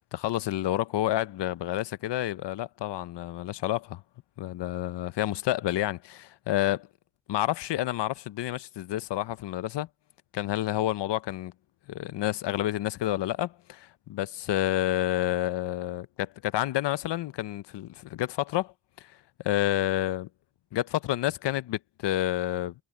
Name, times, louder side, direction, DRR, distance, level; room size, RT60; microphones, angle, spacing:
voice 1, 0.1-4.0 4.4-6.9 7.3-9.9 10.3-11.5 11.9-19.1 19.4-20.3 20.7-22.7, left 14 dB, 85° left, 0.8 m, -29 dB
cardioid pair, 70°, 41 cm